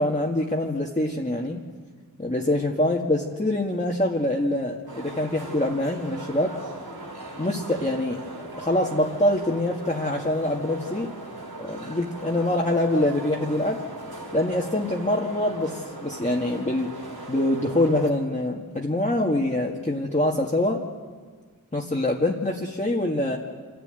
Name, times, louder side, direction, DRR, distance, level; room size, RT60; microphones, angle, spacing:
voice 1, 0.0-1.6 2.2-6.6 7.4-8.2 8.6-11.1 11.6-13.8 14.3-16.9 17.3-20.8 21.7-23.4, left 1 dB, 20° left, -2 dB, 1.8 m, -25 dB
sound 1, 4.9-18.1, right 2 dB, 85° right, 3.2 m, -39 dB
27.5 x 11.5 x 9.1 m, 1.6 s
wide cardioid pair, 40°, 36 cm